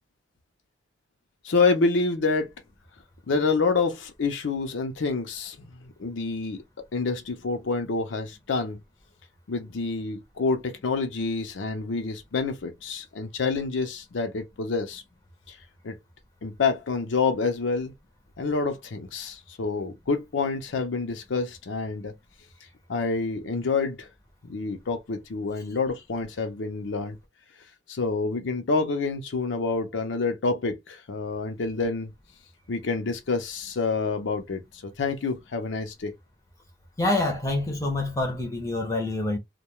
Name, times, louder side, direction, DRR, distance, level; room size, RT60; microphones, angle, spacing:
voice 1, 1.4-2.5 3.3-5.7 6.0-6.6 6.9-8.8 9.5-15.0 15.5-15.6 15.8-15.9 16.4-17.9 18.4-22.1 22.9-24.1 24.4-27.2 27.9-32.1 32.7-36.1, left 4 dB, 85° left, 0.5 m, -27 dB
voice 2, 37.0-39.4, left 2 dB, 15° left, 0.5 m, -26 dB
2.2 x 2.2 x 2.9 m
head